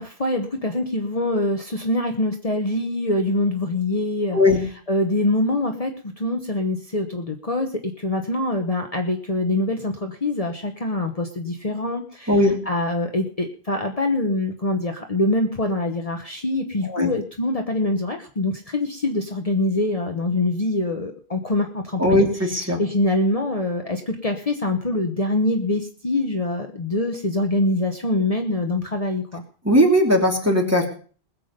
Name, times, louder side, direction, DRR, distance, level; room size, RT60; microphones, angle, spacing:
voice 1, 0.0-4.4 4.9-12.4 12.6-22.2 22.8-29.4, left 2 dB, 35° left, 3 dB, 1.2 m, -24 dB
voice 2, 4.3-4.6 12.3-12.5 16.9-17.1 22.0-22.8 29.6-30.9, left 1 dB, 15° right, 1 dB, 2.8 m, -18 dB
20.5 x 7.6 x 5.2 m, 0.42 s
omnidirectional pair, 1.1 m